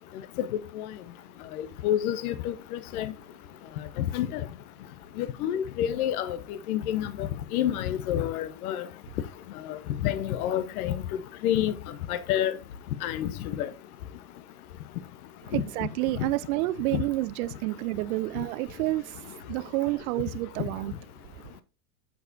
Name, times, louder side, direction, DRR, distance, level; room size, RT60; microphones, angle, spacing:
voice 1, 1.6-3.1 4.0-4.4 5.2-8.9 9.7-9.8 10.0-11.0 11.4-11.7 12.1-12.6 13.0-13.3 13.6-13.7 15.5-15.6 16.9-17.0, left 11 dB, 70° left, 1.0 m, -28 dB
voice 2, 15.4-20.9, right 18 dB, 60° right, 0.7 m, -29 dB
10.5 x 7.0 x 2.7 m
hypercardioid pair, 95°, 46 cm